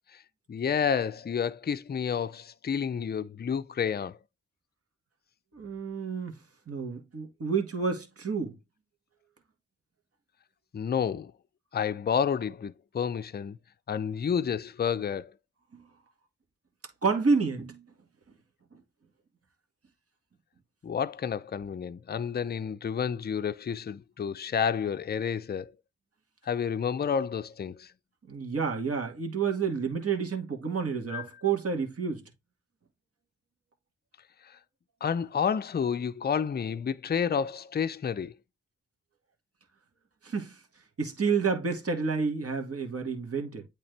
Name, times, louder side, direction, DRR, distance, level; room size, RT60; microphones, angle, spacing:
voice 1, 0.5-4.2 10.7-11.3 11.7-13.6 13.9-15.3 20.8-25.7 26.5-27.9 31.1-31.3 34.4-34.6 35.0-38.4, left 7 dB, 35° left, 0.5 m, -30 dB
voice 2, 5.5-6.4 6.7-8.6 15.7-15.8 17.0-17.9 28.3-32.2 40.2-40.6 41.0-43.7, right 5 dB, 50° right, 2.1 m, -29 dB
8.5 x 3.3 x 3.3 m
cardioid pair, 45°, 30 cm